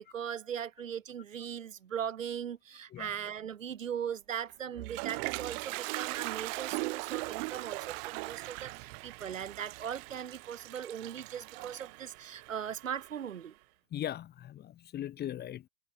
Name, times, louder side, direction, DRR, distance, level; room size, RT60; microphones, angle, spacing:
voice 1, 0.0-13.5, right 8 dB, 85° right, 5.9 m, -39 dB
Toilet flush, 4.5-13.4, right 35 dB, 50° right, 1.3 m, -40 dB
voice 2, 13.9-15.7, left 11 dB, 25° left, 1.1 m, -39 dB
hypercardioid pair, 110°, 38 cm